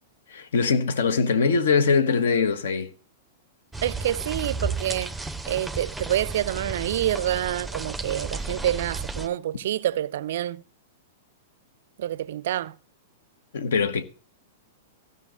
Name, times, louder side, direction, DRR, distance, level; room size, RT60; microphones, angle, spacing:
voice 1, 0.3-2.9 13.5-14.0, left 5 dB, 65° left, 1.2 m, -22 dB
sound 1, 3.7-9.3, right 3 dB, 5° right, 0.6 m, -33 dB
voice 2, 3.8-5.1 5.5-10.6 12.0-12.7, right 12 dB, 60° right, 0.4 m, -27 dB
15.0 x 5.5 x 6.5 m
figure-of-eight pair, 100°, 0 cm